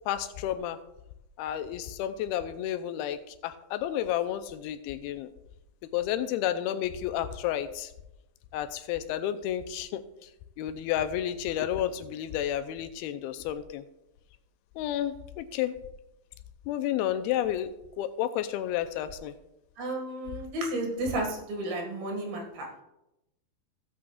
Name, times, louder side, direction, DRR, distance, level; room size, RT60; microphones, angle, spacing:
voice 1, 0.1-0.8 1.4-5.3 5.9-7.9 8.5-10.0 10.6-13.8 14.8-15.8 16.7-17.7 18.0-19.3, left 11 dB, 85° left, 10 dB, 2.5 m, -31 dB
voice 2, 19.8-22.7, right 1 dB, 75° right, 1 dB, 3.7 m, -32 dB
16.5 x 8.6 x 2.4 m, 0.89 s
omnidirectional pair, 4.4 m